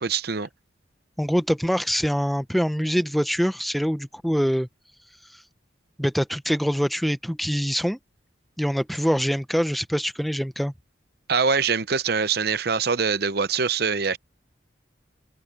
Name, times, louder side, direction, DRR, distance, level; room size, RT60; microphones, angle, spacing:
voice 1, 0.0-0.5 11.3-14.2, right 5 dB, 55° right, 0.8 m, -23 dB
voice 2, 1.2-4.7 5.3-5.4 6.0-8.0 8.6-10.7, equal, ahead, 0.7 m, -24 dB
head